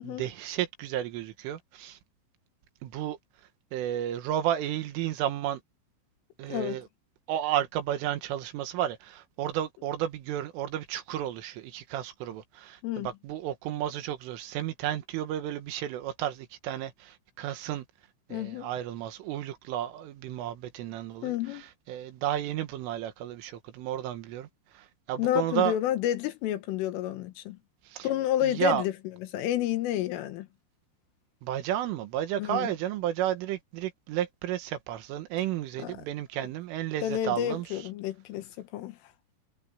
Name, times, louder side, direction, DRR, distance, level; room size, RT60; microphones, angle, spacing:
voice 1, 0.0-2.0 2.8-3.2 3.7-5.6 6.4-6.9 7.3-17.9 18.3-21.3 21.9-24.5 24.7-25.8 27.9-28.1 28.4-28.8 31.4-37.7, right 12 dB, 85° right, 4.1 m, -32 dB
voice 2, 18.3-18.7 21.2-21.7 25.2-27.6 28.0-28.9 29.3-30.5 32.4-32.7 35.8-36.0 37.0-39.0, left 12 dB, 85° left, 4.0 m, -30 dB
omnidirectional pair, 5.6 m